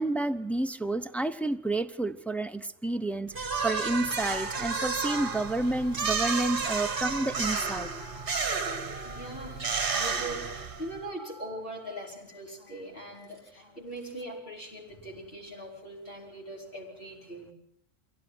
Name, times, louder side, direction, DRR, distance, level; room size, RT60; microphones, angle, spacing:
voice 1, 0.0-7.9, right 2 dB, ahead, 8 dB, 0.6 m, -30 dB
sound 1, 3.3-11.0, right 5 dB, 45° right, 1.5 m, -31 dB
Telephone, 7.5-14.4, left 1 dB, 65° left, 3.4 m, -51 dB
voice 2, 9.0-17.5, right 1 dB, 45° left, -2 dB, 5.5 m, -41 dB
24.0 x 17.0 x 7.8 m, 0.68 s
omnidirectional pair, 1.3 m